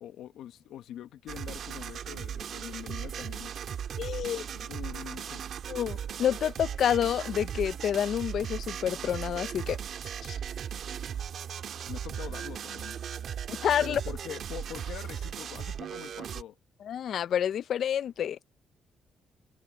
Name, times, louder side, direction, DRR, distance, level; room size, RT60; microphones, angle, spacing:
voice 1, 0.0-5.4 11.9-13.0 13.8-16.6, left 11 dB, 80° left, 0.9 m, -44 dB
sound 1, 1.3-16.4, right 8 dB, 65° right, 1.8 m, -37 dB
voice 2, 4.0-4.4 5.7-9.8 10.2-10.4 13.5-14.0 16.8-18.4, left 9 dB, 65° left, 0.4 m, -28 dB
cardioid pair, 90°, 0 cm